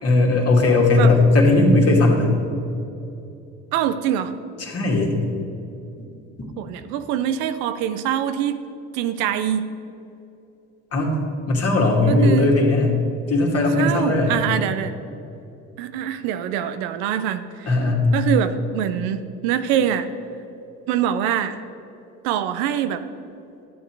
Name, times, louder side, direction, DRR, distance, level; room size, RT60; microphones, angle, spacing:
voice 1, 0.0-2.3 4.6-5.2 10.9-11.1 11.5-12.9 13.3-14.4 17.7-18.2, left 2 dB, 45° left, -1 dB, 2.6 m, -17 dB
voice 2, 3.7-4.3 6.6-8.6 8.9-9.7 12.1-12.5 13.8-14.9 15.8-17.7 18.1-20.1 20.9-21.6 22.2-23.0, right 10 dB, 80° right, 11 dB, 0.7 m, -24 dB
12.0 x 8.5 x 4.7 m, 2.8 s
hypercardioid pair, 65°, 34 cm